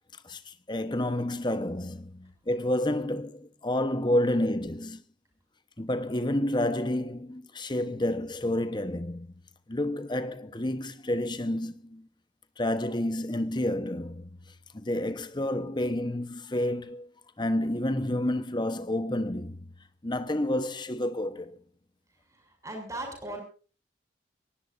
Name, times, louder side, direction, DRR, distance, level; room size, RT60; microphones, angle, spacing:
voice 1, 0.2-5.0 5.8-9.3 9.7-12.1 12.6-14.3 14.7-17.1 17.4-19.7 20.0-21.6, left 1 dB, 25° left, 1.0 m, -29 dB
voice 2, 22.3-23.4, right 1 dB, 15° right, 6.8 m, -38 dB
23.0 x 19.0 x 2.6 m
head